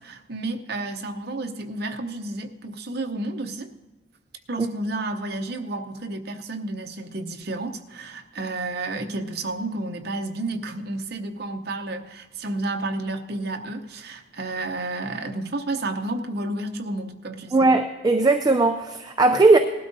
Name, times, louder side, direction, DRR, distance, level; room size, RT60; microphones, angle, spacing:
voice 1, 0.0-3.7 4.5-17.7, right 2 dB, 60° right, 5 dB, 0.8 m, -31 dB
voice 2, 17.5-19.6, right 3 dB, 20° right, 5 dB, 0.4 m, -18 dB
19.0 x 12.5 x 2.7 m, 1.2 s
head